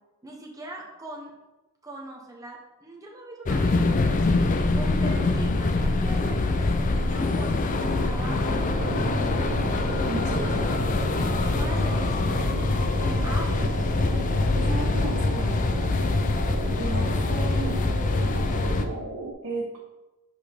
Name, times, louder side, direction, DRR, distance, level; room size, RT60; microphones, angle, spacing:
voice 1, 0.2-1.3 1.8-4.4 4.7-8.5 10.4-12.6 12.9-13.9, right 1 dB, 15° right, -1 dB, 1.0 m, -40 dB
sound 1, 3.5-18.8, left 3 dB, 35° left, 0.4 m, -24 dB
sound 2, 7.7-18.6, right 2 dB, 35° right, 0.6 m, -39 dB
sound 3, 8.5-19.3, right 2 dB, 70° right, 0.8 m, -35 dB
voice 2, 10.1-10.6 14.5-15.7 16.8-18.2 19.4-19.8, right 2 dB, 85° right, -4 dB, 1.1 m, -34 dB
7.5 x 4.3 x 3.5 m, 1.0 s
head